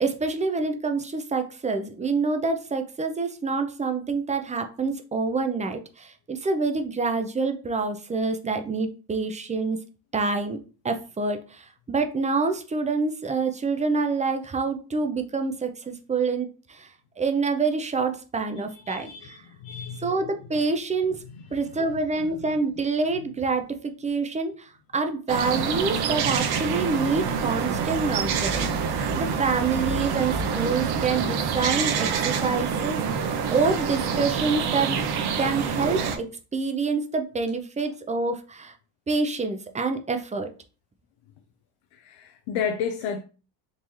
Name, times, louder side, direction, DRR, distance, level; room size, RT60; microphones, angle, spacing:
voice 1, 0.0-9.8 10.1-10.6 10.8-16.9 17.2-19.4 20.0-21.2 21.5-35.0 35.4-36.3 36.5-38.7 39.1-40.5, right 4 dB, 15° right, 0.4 m, -27 dB
voice 2, 18.7-20.1 20.4-20.7 21.3-22.6 23.1-23.2 37.8-37.9 41.9-43.2, left 7 dB, 85° left, 0.6 m, -34 dB
sound 1, 25.3-36.2, right 6 dB, 55° right, 0.6 m, -26 dB
3.8 x 2.7 x 3.0 m
cardioid pair, 95°, 48 cm